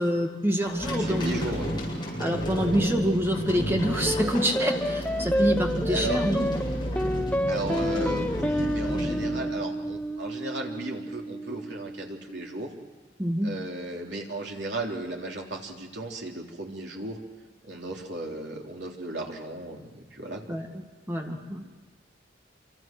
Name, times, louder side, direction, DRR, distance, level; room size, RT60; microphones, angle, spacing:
voice 1, 0.0-1.4 2.2-6.5 13.2-13.5 20.5-21.6, equal, 10° right, 3 dB, 2.0 m, -27 dB
sound 1, 0.6-10.0, equal, 25° left, 7.8 m, -31 dB
voice 2, 1.0-1.7 5.9-6.2 7.5-12.7 13.4-17.2 17.7-20.6, right 2 dB, 65° right, 0 dB, 3.5 m, -35 dB
sound 2, 4.1-12.7, equal, 10° left, 0.9 m, -30 dB
28.0 x 25.0 x 6.2 m, 1.4 s
head